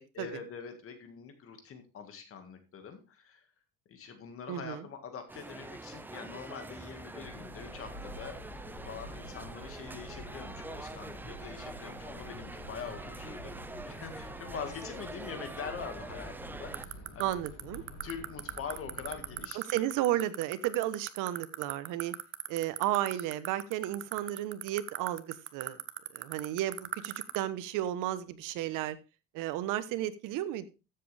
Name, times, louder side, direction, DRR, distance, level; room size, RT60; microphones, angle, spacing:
voice 1, 0.1-3.5 3.9-8.4 8.8-17.3 18.0-19.9, left 6 dB, 45° left, 7 dB, 1.9 m, -44 dB
voice 2, 4.5-4.8 17.2-17.8 19.5-22.1 22.5-25.8 26.1-29.0 29.3-30.7, right 13 dB, 75° right, 14 dB, 1.1 m, -33 dB
sound 1, 5.3-16.8, right 2 dB, 5° right, 0.5 m, -45 dB
sound 2, 7.1-19.4, left 1 dB, 75° left, 4.5 m, -48 dB
sound 3, 16.7-27.4, right 11 dB, 40° right, 0.8 m, -35 dB
13.5 x 7.7 x 3.4 m, 0.30 s
cardioid pair, 140°, 32 cm